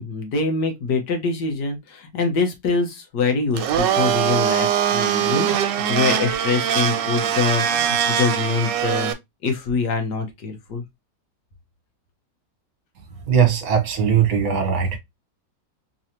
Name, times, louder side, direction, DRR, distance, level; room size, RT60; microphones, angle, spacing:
voice 1, 0.0-9.1 9.4-10.8, left 4 dB, 65° left, 1.7 m, -24 dB
Domestic sounds home sounds, 3.5-9.1, right 9 dB, 75° right, 1.3 m, -22 dB
voice 2, 13.3-15.0, right 7 dB, 55° right, 1.5 m, -19 dB
3.9 x 3.1 x 2.8 m
omnidirectional pair, 2.0 m